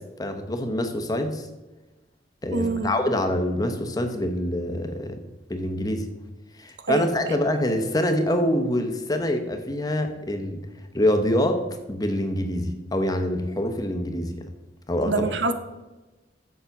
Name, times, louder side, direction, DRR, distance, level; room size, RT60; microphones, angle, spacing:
voice 1, 0.2-1.5 2.4-5.2 5.5-6.1 6.6-10.6 10.9-14.5 14.9-15.2, left 1 dB, 20° left, 6 dB, 0.9 m, -25 dB
voice 2, 2.5-2.9 6.9-7.4 15.1-15.5, right 3 dB, 85° right, 9 dB, 0.8 m, -26 dB
7.0 x 6.6 x 5.9 m, 1.1 s
head